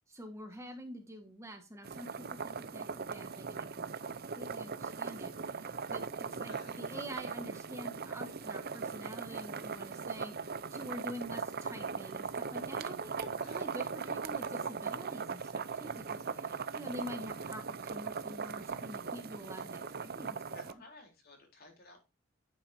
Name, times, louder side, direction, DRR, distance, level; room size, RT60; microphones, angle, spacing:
voice 1, 0.1-3.9 4.4-20.4 20.7-20.8, equal, 15° right, 4 dB, 1.6 m, -47 dB
sound 1, 1.8-20.7, right 5 dB, 50° right, 0.7 m, -39 dB
voice 2, 6.5-6.8 13.4-14.6 20.5-22.1, left 2 dB, 50° left, 2 dB, 3.8 m, -57 dB
11.0 x 9.2 x 2.8 m, 0.26 s
head